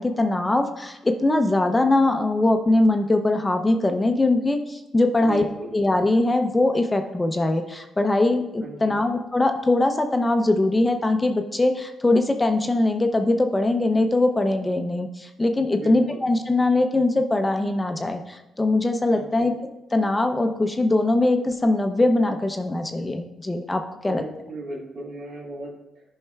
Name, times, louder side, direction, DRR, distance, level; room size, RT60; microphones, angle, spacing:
voice 1, 0.0-5.5 5.7-19.5 19.9-24.2, left 2 dB, 15° left, 6 dB, 0.5 m, -21 dB
voice 2, 5.2-5.8 8.6-9.0 15.7-16.2 19.1-19.5 24.0-26.0, right 2 dB, 65° right, -4 dB, 2.1 m, -37 dB
13.0 x 5.4 x 2.3 m, 0.98 s
cardioid pair, 125°, 0 cm